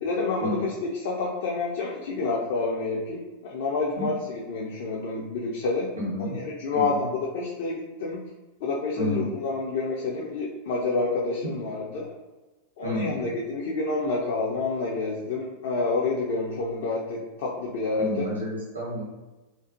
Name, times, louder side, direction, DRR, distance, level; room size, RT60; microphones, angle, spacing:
voice 1, 0.0-4.1 4.5-5.9 6.2-8.2 8.6-12.1 12.8-18.3, left 3 dB, 50° left, -4 dB, 0.3 m, -28 dB
voice 2, 6.0-6.3 6.7-7.0 9.0-9.3 12.8-13.2 18.0-19.0, equal, 80° right, -6 dB, 1.0 m, -30 dB
2.5 x 2.3 x 2.5 m, 1.1 s
figure-of-eight pair, 90°, 0 cm